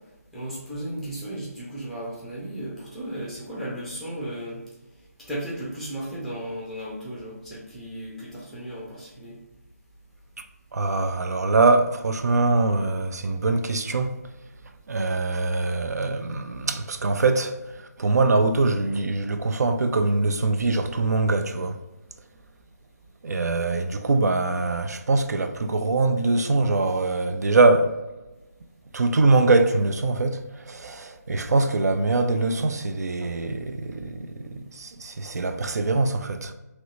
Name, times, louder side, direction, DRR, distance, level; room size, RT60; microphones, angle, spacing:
voice 1, 0.3-4.6 5.3-9.4, right 1 dB, ahead, 0.5 m, -35 dB
voice 2, 10.7-14.2 14.9-21.8 23.2-27.9 28.9-36.5, right 3 dB, 75° right, 0.4 m, -23 dB
2.9 x 2.7 x 3.0 m
figure-of-eight pair, 160°, 9 cm